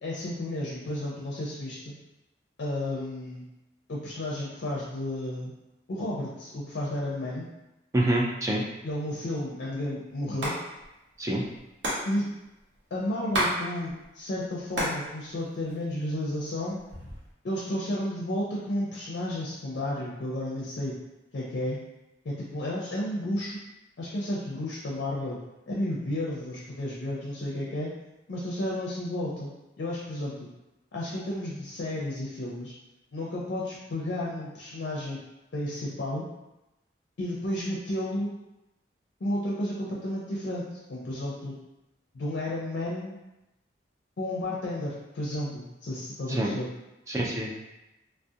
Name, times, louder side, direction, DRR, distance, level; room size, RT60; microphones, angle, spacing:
voice 1, 0.0-1.9 2.6-3.5 3.9-5.5 5.9-7.5 8.8-10.5 12.0-12.3 12.9-16.8 17.4-21.0 21.3-21.8 22.2-23.6 24.0-25.4 25.7-27.9 28.3-29.5 29.8-30.5 30.9-32.7 33.1-35.2 35.5-36.2 37.2-38.3 39.2-41.5 42.1-43.2 44.2-46.7, left 1 dB, 70° left, -5 dB, 0.5 m, -32 dB
voice 2, 7.9-8.6 11.2-11.4 46.3-46.5 47.1-47.5, right 1 dB, 15° right, -3 dB, 0.3 m, -26 dB
Hands, 10.2-10.6 10.8-10.9 11.1-13.6 13.9-15.0 15.4-16.2 16.7-17.3, right 1 dB, 85° right, 0.7 m, -30 dB
2.4 x 2.0 x 2.7 m, 0.96 s
head